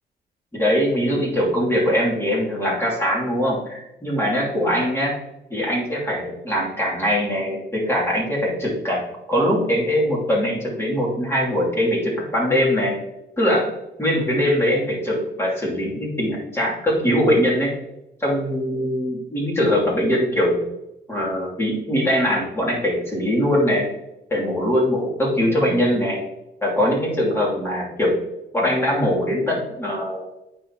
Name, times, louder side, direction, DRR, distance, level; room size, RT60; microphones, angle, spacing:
voice 1, 0.5-5.2 5.5-13.0 13.4-13.7 14.0-17.7 18.2-20.6 21.1-23.9 24.3-26.2 26.6-28.2 28.5-30.2, equal, 15° left, -4 dB, 2.8 m, -22 dB
8.9 x 6.3 x 2.9 m, 0.88 s
cardioid pair, 145°, 18 cm